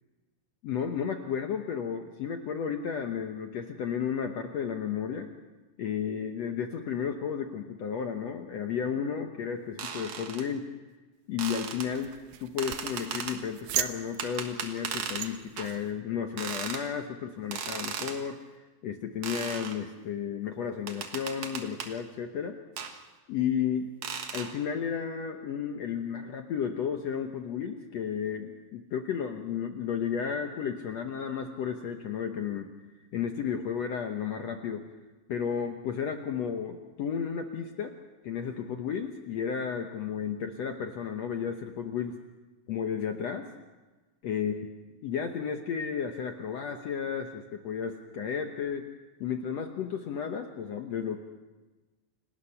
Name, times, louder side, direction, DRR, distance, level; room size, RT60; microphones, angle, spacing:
voice 1, 0.6-5.3 5.8-10.7 11.3-22.6 23.3-23.9 24.3-32.7 33.1-34.9 35.3-37.9 38.2-42.2 42.7-43.5 44.2-44.5 45.0-48.9 49.2-51.2, left 7 dB, 65° left, 5 dB, 1.8 m, -33 dB
sound 1, 9.8-10.5 11.4-11.9 12.6-13.4 14.2-15.3 15.6-15.8 16.4-16.8 17.5-18.2 19.2-19.8 20.9-21.9 22.8-22.9 24.0-24.5, right 6 dB, 60° right, 2.6 m, -36 dB
sound 2, 11.4-15.9, right 13 dB, 90° right, 2.6 m, -38 dB
28.5 x 19.0 x 5.7 m, 1.2 s
omnidirectional pair, 4.0 m